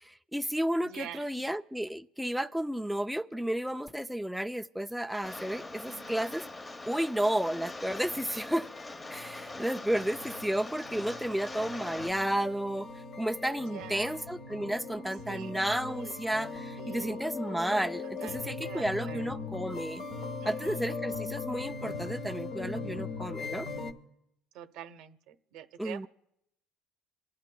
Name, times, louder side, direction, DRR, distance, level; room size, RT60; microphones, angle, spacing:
voice 1, 0.0-6.4 6.9-8.7 9.1-20.0 20.4-23.7 25.8-26.1, right 1 dB, ahead, 0.4 m, -32 dB
voice 2, 0.8-1.4 5.9-6.3 11.3-11.4 13.7-14.3 15.3-16.2 16.8-17.3 18.0-19.3 20.4-20.9 24.5-26.1, right 10 dB, 75° right, 0.9 m, -46 dB
Rain, 5.2-12.1, left 2 dB, 20° left, 0.9 m, -42 dB
sound 1, 7.0-23.9, left 4 dB, 55° left, 1.3 m, -40 dB
27.0 x 12.0 x 2.2 m
supercardioid pair, 105°, 0 cm